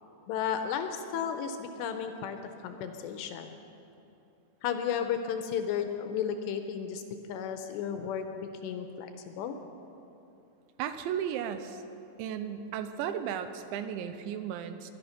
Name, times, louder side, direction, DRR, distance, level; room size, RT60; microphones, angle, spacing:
voice 1, 0.3-3.6 4.6-7.0 7.3-9.6, left 8 dB, 80° left, 7 dB, 2.7 m, -34 dB
voice 2, 10.8-11.8 12.2-14.9, right 9 dB, 85° right, 10 dB, 2.9 m, -35 dB
21.5 x 11.5 x 5.8 m, 2.9 s
omnidirectional pair, 5.4 m